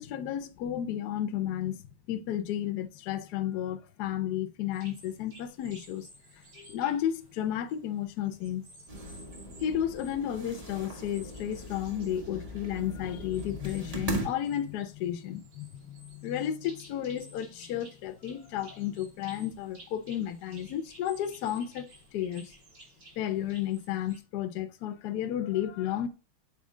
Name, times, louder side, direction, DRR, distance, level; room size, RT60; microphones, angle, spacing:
voice 1, 0.0-6.1 6.3-8.6 9.6-22.5 23.2-26.1, left 11 dB, 70° left, 1.0 m, -33 dB
sound 1, 4.7-24.2, right 2 dB, 55° right, 3.2 m, -55 dB
sound 2, 8.9-14.3, right 2 dB, 20° right, 1.1 m, -39 dB
7.3 x 4.3 x 3.7 m
omnidirectional pair, 2.3 m